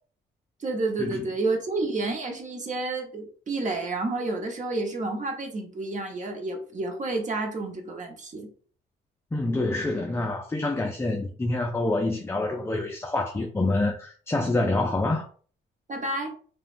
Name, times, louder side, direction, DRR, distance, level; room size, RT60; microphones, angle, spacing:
voice 1, 0.6-8.5 15.9-16.3, right 2 dB, 40° right, 0.9 m, -30 dB
voice 2, 9.3-15.3, left 2 dB, 15° left, 0.4 m, -27 dB
3.1 x 2.2 x 2.5 m
cardioid pair, 90°, 20 cm